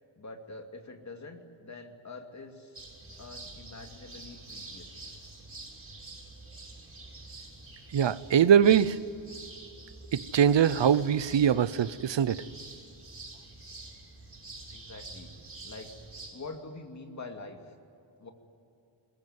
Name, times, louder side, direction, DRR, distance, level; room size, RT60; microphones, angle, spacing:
voice 1, 0.2-2.8 3.2-5.0 14.7-15.3 15.6-16.0 16.3-17.7 18.2-18.3, left 3 dB, 35° left, 4 dB, 2.6 m, -45 dB
sound 1, 2.7-16.3, right 2 dB, 30° right, 6.1 m, -47 dB
voice 2, 7.9-9.0 10.1-12.4, right 8 dB, 65° right, 16 dB, 0.9 m, -22 dB
22.0 x 21.5 x 9.5 m, 2.7 s
wide cardioid pair, 130°, 48 cm